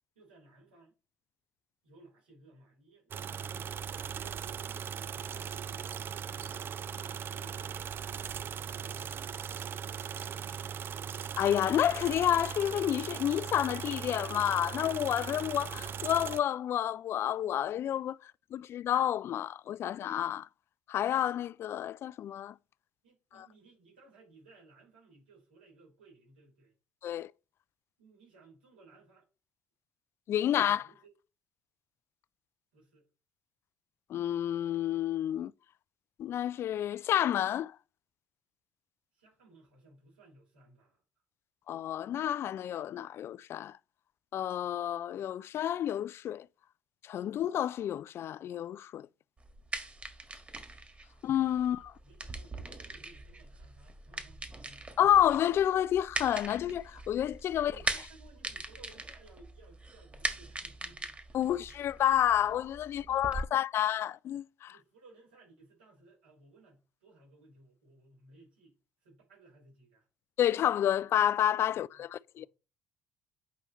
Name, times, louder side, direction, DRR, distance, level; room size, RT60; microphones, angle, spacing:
voice 1, 0.1-0.9 1.8-10.8 23.0-26.7 28.0-29.3 30.6-31.1 32.7-33.1 39.1-41.0 51.1-51.2 51.6-54.8 57.5-61.7 62.9-63.4 64.7-68.7 69.0-70.1 71.7-72.1 72.4-72.5, right 3 dB, 90° right, 4.3 m, -60 dB
sound 1, 3.1-16.4, right 7 dB, 45° right, 0.4 m, -39 dB
voice 2, 11.4-18.2 18.5-20.5 20.9-22.5 23.3-23.5 27.0-27.3 30.3-30.9 34.1-35.5 36.2-37.7 41.7-43.7 44.3-46.5 47.0-49.1 51.2-51.9 55.0-57.7 61.3-64.7 70.4-72.5, left 11 dB, 55° left, 0.3 m, -29 dB
sound 2, 49.4-63.4, right 2 dB, 25° right, 1.6 m, -41 dB
8.3 x 5.4 x 3.1 m
hypercardioid pair, 55°, 5 cm